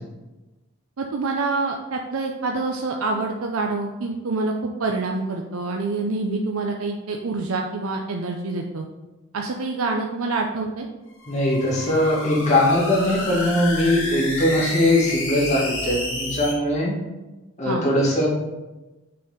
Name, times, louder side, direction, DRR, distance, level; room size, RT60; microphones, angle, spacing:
voice 1, 1.0-8.9 9.3-10.9 17.6-17.8, right 3 dB, 90° right, 2 dB, 0.6 m, -26 dB
sound 1, 11.1-16.5, left 2 dB, 85° left, 1.9 m, -30 dB
voice 2, 11.3-17.0 17.6-18.3, left 1 dB, 35° left, -5 dB, 2.1 m, -20 dB
6.6 x 4.2 x 5.1 m, 1.1 s
head